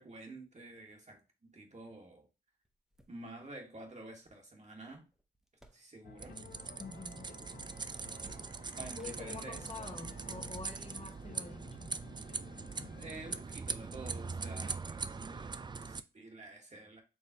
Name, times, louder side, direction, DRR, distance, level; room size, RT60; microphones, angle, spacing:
voice 1, 0.0-2.3 3.1-5.1 5.7-6.4 8.8-10.1 12.4-17.0, right 2 dB, 40° right, 1.6 m, -50 dB
sound 1, 2.6-6.4 6.7-7.4 7.7-9.8 10.5-10.6 11.9-12.1, equal, ahead, 0.9 m, -64 dB
sound 2, 6.0-13.4, left 7 dB, 55° left, 0.4 m, -55 dB
sound 3, 6.2-16.0, right 4 dB, 25° right, 0.3 m, -42 dB
voice 2, 6.8-7.3 9.0-11.9, left 3 dB, 35° left, 1.0 m, -47 dB
4.7 x 3.1 x 2.9 m
cardioid pair, 50°, 18 cm